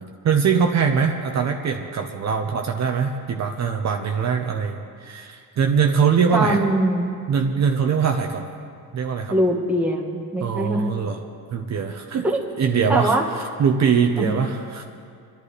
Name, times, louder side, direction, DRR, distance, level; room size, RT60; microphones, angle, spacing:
voice 1, 0.0-6.6 7.3-8.5 8.9-9.3 10.4-11.2 11.5-12.2 12.6-14.8, right 6 dB, 45° right, 3 dB, 1.0 m, -22 dB
voice 2, 6.3-7.1 9.3-10.9 12.2-12.5 12.9-13.2 14.2-14.3, right 1 dB, 5° right, -1 dB, 1.4 m, -22 dB
27.0 x 11.0 x 3.3 m, 2.3 s
cardioid pair, 140°, 40 cm